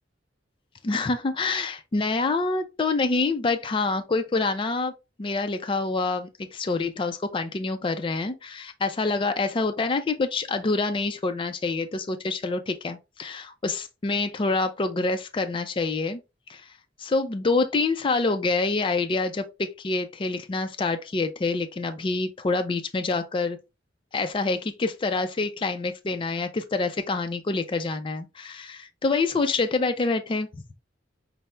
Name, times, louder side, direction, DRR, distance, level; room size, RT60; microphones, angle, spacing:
voice 1, 0.8-4.9 5.2-16.2 16.5-16.7 17.0-23.6 24.1-30.5, left 3 dB, 30° left, 0.4 m, -26 dB
5.5 x 2.0 x 3.3 m
head